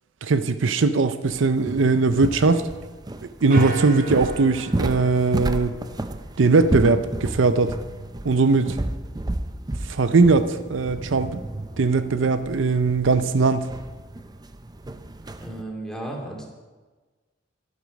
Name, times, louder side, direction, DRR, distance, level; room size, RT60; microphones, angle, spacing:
voice 1, 0.2-2.6 3.2-5.8 6.4-7.8 8.2-8.8 9.9-11.4 11.8-13.7, right 3 dB, 85° right, 11 dB, 0.6 m, -20 dB
sound 1, 1.3-15.6, right 1 dB, 20° right, 0.6 m, -32 dB
sound 2, 3.5-6.2, right 3 dB, 50° right, 1.3 m, -36 dB
voice 2, 15.4-16.4, right 1 dB, 5° left, -1 dB, 2.6 m, -34 dB
12.0 x 11.5 x 5.2 m, 1.3 s
head